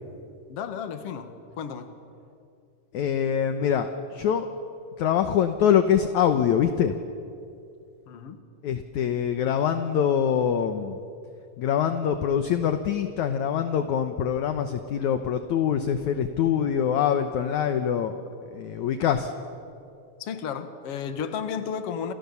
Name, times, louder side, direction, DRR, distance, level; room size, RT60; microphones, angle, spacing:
voice 1, 0.5-2.0 8.1-8.4 20.2-22.1, left 7 dB, 50° left, 8 dB, 1.9 m, -33 dB
voice 2, 2.9-4.5 5.0-6.9 8.6-11.0 11.6-18.2 18.5-19.3, left 8 dB, 70° left, 8 dB, 1.9 m, -24 dB
28.5 x 28.5 x 7.1 m, 2.5 s
omnidirectional pair, 4.6 m